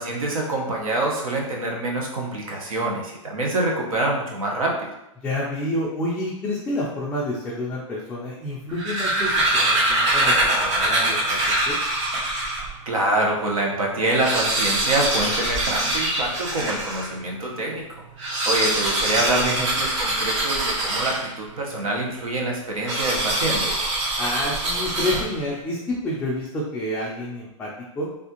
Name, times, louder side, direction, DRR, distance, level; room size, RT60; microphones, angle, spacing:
voice 1, 0.0-4.9 12.9-17.9 18.2-23.8, right 2 dB, 90° right, -1 dB, 0.9 m, -26 dB
voice 2, 5.2-11.8 19.5-19.6 24.2-27.7 27.9-28.1, left 1 dB, 5° left, -6 dB, 0.3 m, -29 dB
sound 1, 8.6-12.7 13.3-13.4 13.6-13.7 14.0-17.1 18.1-21.5 22.8-25.5, right 1 dB, 60° right, 0.8 m, -23 dB
3.4 x 2.5 x 2.8 m, 0.89 s
hypercardioid pair, 145°, 17 cm